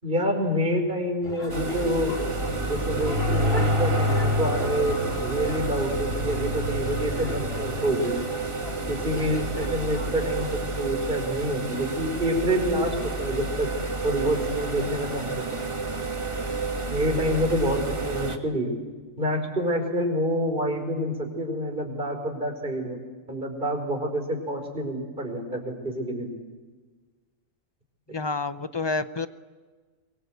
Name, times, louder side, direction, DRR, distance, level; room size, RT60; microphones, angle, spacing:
voice 1, 0.0-8.2 8.9-13.7 14.0-15.4 16.8-18.7 19.2-23.0 23.3-26.3, equal, 40° right, 3 dB, 5.2 m, -27 dB
sound 1, 1.2-10.9, left 2 dB, 50° left, 3.0 m, -41 dB
sound 2, 1.5-18.4, right 3 dB, 25° right, 1.5 m, -30 dB
sound 3, 2.2-11.3 11.7-11.8, left 2 dB, 75° right, 2.4 m, -30 dB
voice 2, 28.1-29.3, left 3 dB, 30° left, 13 dB, 0.5 m, -28 dB
23.5 x 23.0 x 7.9 m, 1.4 s
omnidirectional pair, 1.4 m